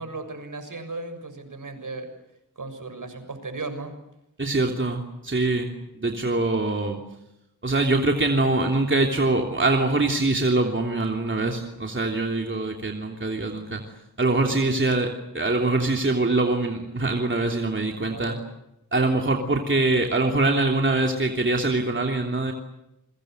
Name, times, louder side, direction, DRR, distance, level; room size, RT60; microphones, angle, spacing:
voice 1, 0.0-2.1 2.5-3.9 14.5-15.0 17.9-18.4, right 3 dB, 60° right, 8 dB, 6.8 m, -36 dB
voice 2, 4.4-5.7 5.9-7.0 7.6-13.8 14.2-18.4 18.9-22.5, right 2 dB, 35° right, 2 dB, 3.2 m, -23 dB
28.5 x 23.5 x 7.9 m, 0.84 s
wide cardioid pair, 65°, 35 cm